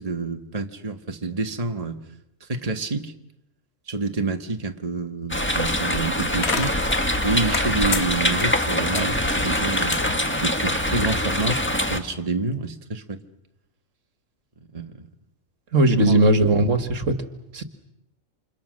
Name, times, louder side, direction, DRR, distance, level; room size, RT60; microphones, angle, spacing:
voice 1, 0.0-2.0 2.4-3.1 3.9-6.8 7.2-13.2 14.7-14.9 16.0-16.2, right 3 dB, 25° right, 5 dB, 1.7 m, -28 dB
sound 1, 5.3-12.0, left 1 dB, 10° left, 1.8 m, -24 dB
sound 2, 5.9-11.1, left 5 dB, 55° left, 1.6 m, -32 dB
voice 2, 15.7-17.2 17.5-17.6, right 1 dB, 65° right, 8 dB, 2.1 m, -18 dB
29.5 x 27.5 x 6.5 m, 0.88 s
omnidirectional pair, 1.4 m